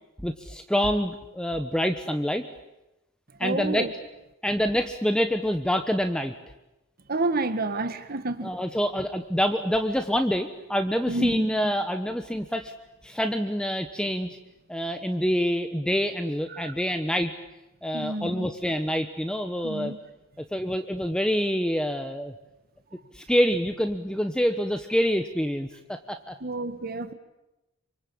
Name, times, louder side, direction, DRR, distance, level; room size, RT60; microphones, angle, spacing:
voice 1, 0.2-2.4 3.4-3.8 4.4-6.3 8.4-12.7 13.0-14.4 14.7-17.3 17.8-19.9 20.5-22.3 23.1-26.3, equal, 5° left, 6 dB, 1.1 m, -26 dB
voice 2, 3.4-3.9 7.1-8.5 11.1-11.5 16.5-16.7 17.9-18.5 19.6-20.0 26.4-27.1, right 2 dB, 45° right, 10 dB, 1.7 m, -29 dB
27.5 x 25.0 x 8.7 m, 0.95 s
head